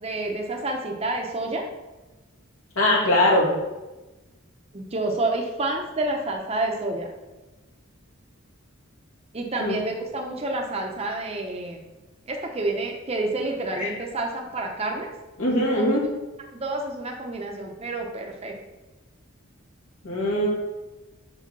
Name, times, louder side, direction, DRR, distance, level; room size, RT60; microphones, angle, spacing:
voice 1, 0.0-1.6 4.7-7.1 9.3-11.8 12.3-15.1 15.7-15.9 16.5-18.5, right 2 dB, 30° right, 1 dB, 0.8 m, -29 dB
voice 2, 2.8-3.5 9.6-9.8 13.7-13.9 15.4-16.0 20.0-20.5, left 1 dB, 75° left, -4 dB, 2.5 m, -21 dB
5.9 x 5.2 x 6.0 m, 1.1 s
head